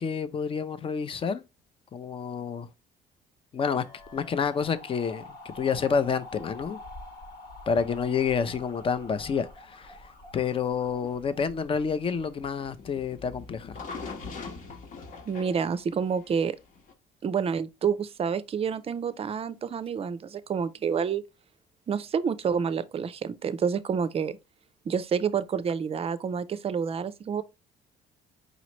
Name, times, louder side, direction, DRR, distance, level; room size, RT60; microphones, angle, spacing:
voice 1, 0.0-1.4 1.9-2.7 3.5-3.8 4.1-6.8 7.7-10.0 10.3-13.8, left 6 dB, 30° left, 0.6 m, -29 dB
sound 1, 3.6-12.6, left 1 dB, 70° left, 1.5 m, -47 dB
sound 2, 11.0-16.9, left 4 dB, 50° left, 1.1 m, -42 dB
voice 2, 15.3-16.6 17.2-21.2 21.9-24.4 24.9-27.4, right 6 dB, 35° right, 0.5 m, -28 dB
5.1 x 3.0 x 3.0 m
cardioid pair, 110°, 17 cm